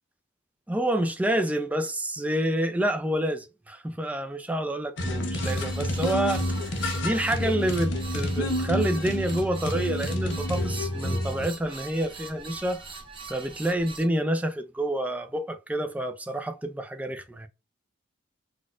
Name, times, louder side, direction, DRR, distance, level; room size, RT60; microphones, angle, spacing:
voice 1, 0.7-6.8 7.0-12.8 13.3-17.5, right 1 dB, 10° right, 0.3 m, -28 dB
sound 1, 5.0-11.5, left 1 dB, 65° left, 0.6 m, -29 dB
sound 2, 5.3-14.1, right 4 dB, 25° right, 0.8 m, -43 dB
4.1 x 2.2 x 2.4 m
head